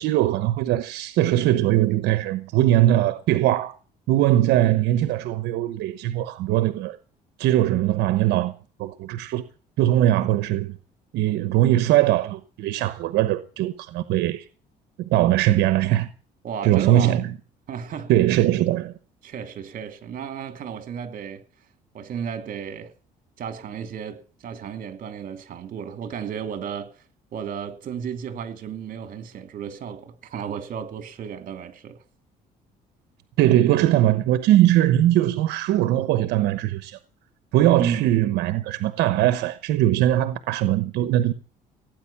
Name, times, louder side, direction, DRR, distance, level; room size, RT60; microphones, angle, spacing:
voice 1, 0.0-3.7 4.1-7.0 7.4-8.5 8.8-9.4 9.8-10.8 11.1-14.4 15.0-16.1 16.6-17.3 18.1-18.9 33.4-37.0 37.5-41.3, right 13 dB, 85° right, 1.0 m, -20 dB
voice 2, 16.4-17.2 17.7-18.1 19.2-21.4 21.9-22.9 23.4-27.0 27.3-32.0 37.8-38.1, right 7 dB, 55° right, 2.8 m, -33 dB
17.5 x 9.4 x 7.2 m
cardioid pair, 110°, 17 cm